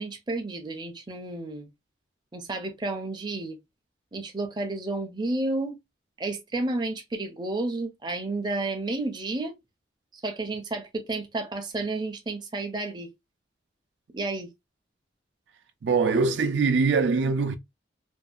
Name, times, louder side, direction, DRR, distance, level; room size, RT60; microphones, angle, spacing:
voice 1, 0.0-1.7 2.3-3.6 4.1-5.8 6.2-9.5 10.1-13.1 14.1-14.5, right 2 dB, 25° right, 0.5 m, -31 dB
voice 2, 15.8-17.6, right 4 dB, 75° right, 0.4 m, -23 dB
2.7 x 2.4 x 2.3 m
head